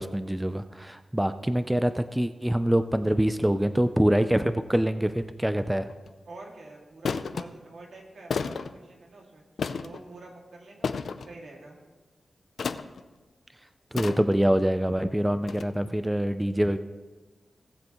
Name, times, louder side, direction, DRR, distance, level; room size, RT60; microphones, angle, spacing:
voice 1, 0.0-5.9 13.9-16.8, right 1 dB, 5° right, 10 dB, 0.4 m, -25 dB
sound 1, 5.9-6.1 7.0-7.4 8.3-8.7 9.6-10.0 10.8-11.3 12.6-13.0 14.0-14.5 15.5-15.6, left 5 dB, 80° left, 0.4 m, -31 dB
voice 2, 6.3-9.4 9.8-11.8, right 2 dB, 80° right, -1 dB, 2.2 m, -47 dB
18.5 x 7.6 x 3.0 m, 1.2 s
wide cardioid pair, 115°, 0 cm